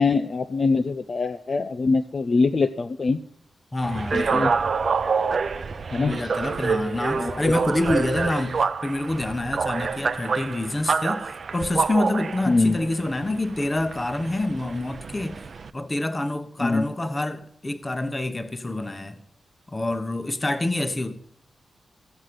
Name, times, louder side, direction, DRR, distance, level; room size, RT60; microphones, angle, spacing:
voice 1, 0.0-3.2 4.1-4.5 5.9-6.2 7.2-7.5 12.5-12.8 16.6-16.8, left 3 dB, 40° left, 0.6 m, -23 dB
voice 2, 3.7-4.6 6.0-15.4 15.7-19.2 19.7-21.2, left 2 dB, 20° left, 1.0 m, -27 dB
sound 1, 3.8-15.7, right 5 dB, 45° right, 0.7 m, -27 dB
15.0 x 8.1 x 7.7 m
wide cardioid pair, 150°, 0 cm